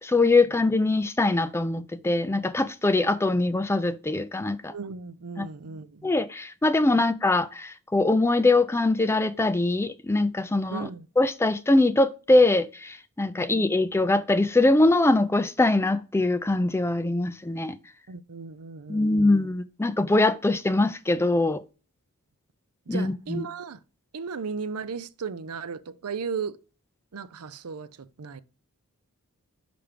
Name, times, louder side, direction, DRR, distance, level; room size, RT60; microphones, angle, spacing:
voice 1, 0.0-4.7 5.4-5.5 6.0-10.9 11.2-17.8 18.9-21.6 22.9-23.4, left 2 dB, 10° left, 0.4 m, -22 dB
voice 2, 4.7-6.1 7.0-7.1 10.7-11.1 13.3-13.7 18.1-19.4 22.9-23.8 24.1-26.6 27.1-27.9 28.2-28.4, right 5 dB, 80° right, 0.6 m, -36 dB
5.9 x 5.1 x 5.0 m
head